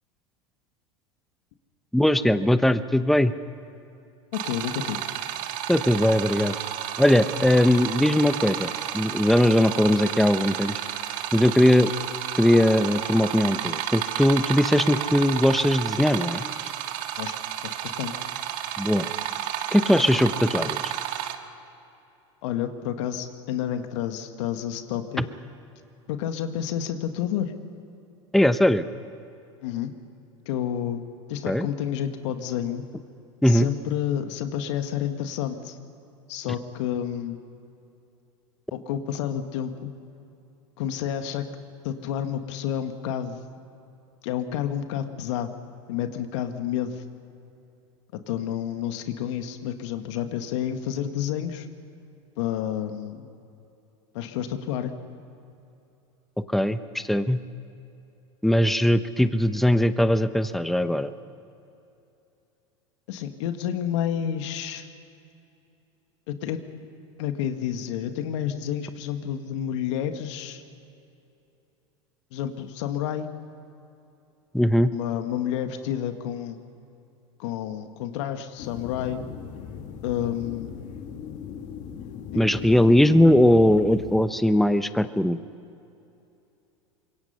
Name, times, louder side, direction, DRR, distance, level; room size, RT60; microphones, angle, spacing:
voice 1, 1.9-3.3 5.7-6.6 7.0-10.8 11.3-11.9 12.4-16.4 18.8-19.1 19.7-20.8 25.2-25.3 28.3-28.9 31.5-31.7 33.4-33.7 56.5-57.4 58.4-61.1 74.5-74.9 82.3-85.4, left 1 dB, ahead, 12 dB, 0.8 m, -20 dB
voice 2, 4.3-5.0 17.2-17.3 17.6-18.2 22.4-25.2 26.1-27.5 29.6-29.9 30.5-31.0 31.3-32.8 33.5-35.8 36.3-37.4 38.7-39.9 40.8-41.5 41.8-43.5 44.2-45.5 45.9-47.0 48.3-51.7 52.4-53.3 54.1-54.9 63.1-64.9 66.3-66.6 67.2-70.6 72.3-73.3 74.9-76.6 77.4-79.2 80.0-80.7, left 10 dB, 65° left, 8 dB, 1.7 m, -30 dB
sound 1, 4.3-21.4, right 11 dB, 55° right, 1.7 m, -31 dB
sound 2, 78.6-84.3, left 7 dB, 50° left, 2.2 m, -39 dB
25.5 x 22.5 x 5.6 m, 2.8 s
hypercardioid pair, 95°, 16 cm